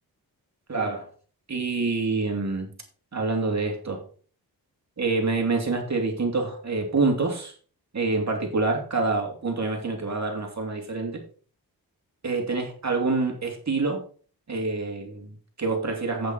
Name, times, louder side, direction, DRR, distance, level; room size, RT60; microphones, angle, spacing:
voice 1, 0.7-1.1 1.5-2.7 3.1-4.0 5.0-7.5 7.9-11.2 12.2-14.0 14.5-16.3, right 3 dB, 45° right, 2 dB, 3.0 m, -26 dB
8.7 x 8.0 x 4.2 m, 0.41 s
wide cardioid pair, 85°, 38 cm